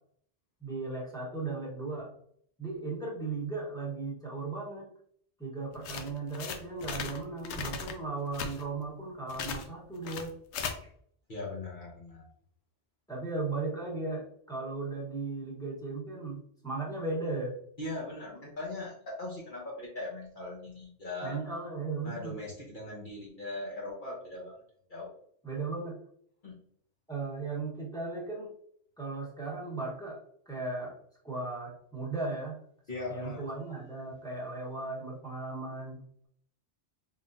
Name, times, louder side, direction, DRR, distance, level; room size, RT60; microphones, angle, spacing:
voice 1, 0.6-2.1 2.6-4.9 5.4-10.3 10.6-10.9 13.1-17.5 21.2-22.4 25.4-26.0 27.1-28.5 29.0-31.0 31.2-32.6 33.1-36.3, right 3 dB, 5° left, -4 dB, 1.1 m, -36 dB
sound 1, 5.7-7.2 7.4-7.9 8.3-8.6 9.3-9.7 10.0-10.7, left 6 dB, 85° left, 0.9 m, -37 dB
voice 2, 11.3-12.3 17.8-21.4 22.0-24.6 24.9-25.1 26.4-26.6 32.9-33.9, left 2 dB, 50° left, -4 dB, 1.1 m, -40 dB
3.6 x 3.4 x 2.6 m, 0.64 s
omnidirectional pair, 1.1 m